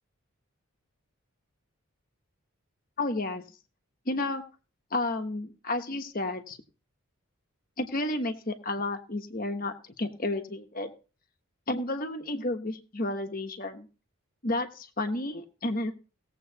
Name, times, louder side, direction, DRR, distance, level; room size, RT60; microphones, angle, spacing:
voice 1, 3.0-3.4 4.0-4.4 4.9-6.6 7.8-10.9 11.7-13.9 14.4-15.9, left 2 dB, 40° left, 6 dB, 1.2 m, -31 dB
19.0 x 7.8 x 2.9 m, 0.35 s
head